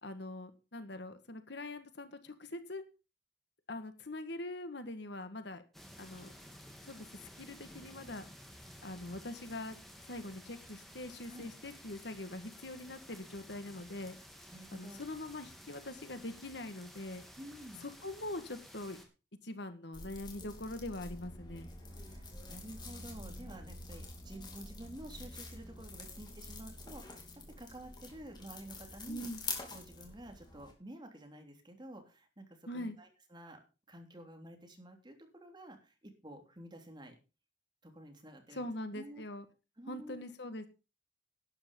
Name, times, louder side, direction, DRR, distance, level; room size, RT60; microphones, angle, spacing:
voice 1, 0.0-2.8 3.7-5.6 6.0-6.3 6.8-7.1 7.3-8.2 8.8-9.8 10.1-14.2 14.7-17.2 17.8-19.0 19.4-21.7 29.1-29.4 32.7-33.0 38.5-39.5 39.9-40.7, left 1 dB, 70° left, 9 dB, 1.7 m, -43 dB
sound 1, 5.7-19.0, equal, ahead, 3.0 m, -54 dB
voice 2, 14.5-15.0 17.4-17.8 21.9-27.3 27.6-29.3 29.7-33.6 33.9-37.2 37.8-38.7 38.9-39.2 39.8-40.3, right 1 dB, 25° right, 4 dB, 3.3 m, -50 dB
sound 2, 19.9-30.7, left 3 dB, 25° left, 3.5 m, -47 dB
12.0 x 10.0 x 5.4 m, 0.32 s
head